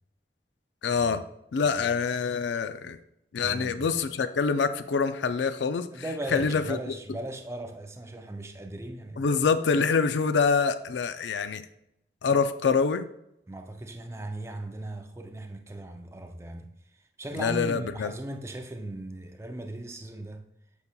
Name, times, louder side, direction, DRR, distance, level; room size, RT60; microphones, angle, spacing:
voice 1, 0.8-1.2 1.5-3.0 3.3-5.9 6.3-6.8 9.2-11.6 12.2-13.1 17.3-18.1, left 5 dB, 90° left, 0.4 m, -25 dB
voice 2, 3.4-3.9 5.9-9.4 13.5-16.7 17.2-20.4, right 1 dB, 15° right, 0.4 m, -38 dB
8.3 x 5.4 x 2.3 m
head